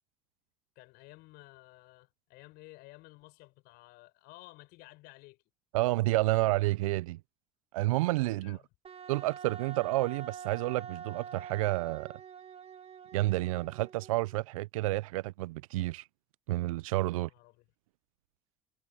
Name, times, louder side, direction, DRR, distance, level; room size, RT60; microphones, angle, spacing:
voice 1, 0.7-5.4 8.4-8.7 17.1-17.7, left 21 dB, 70° left, 6.1 m, -54 dB
voice 2, 5.7-7.2 7.7-8.6 9.1-12.1 13.1-16.0 16.5-17.3, right 19 dB, 85° right, 0.4 m, -30 dB
Wind instrument woodwind instrument, 8.8-14.3, right 7 dB, 35° right, 2.0 m, -46 dB
hypercardioid pair, 70°, 17 cm